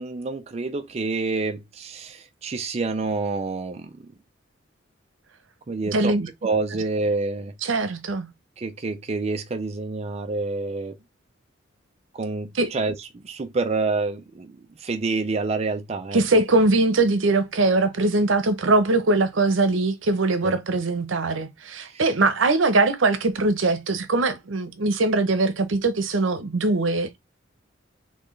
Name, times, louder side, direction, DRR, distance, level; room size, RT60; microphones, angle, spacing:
voice 1, 0.0-4.0 5.7-6.1 6.4-7.5 8.6-11.0 12.1-16.2 20.4-20.5 21.8-22.1, right 3 dB, 35° right, 0.4 m, -28 dB
voice 2, 5.9-6.3 7.6-8.3 12.6-12.7 16.1-27.2, right 2 dB, 80° right, 0.8 m, -21 dB
4.4 x 3.2 x 3.2 m
head